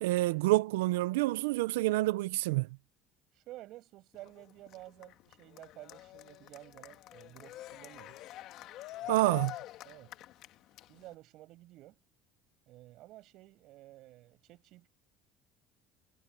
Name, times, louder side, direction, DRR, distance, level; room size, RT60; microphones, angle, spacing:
voice 1, 0.0-2.7 9.1-9.5, right 19 dB, 85° right, 0.6 m, -28 dB
voice 2, 3.3-8.2 9.0-9.3 9.8-10.2 10.9-12.0 12.7-14.9, right 16 dB, 65° right, 6.5 m, -52 dB
Cheering, 4.1-11.1, left 14 dB, 65° left, 1.6 m, -47 dB
supercardioid pair, 75°, 0 cm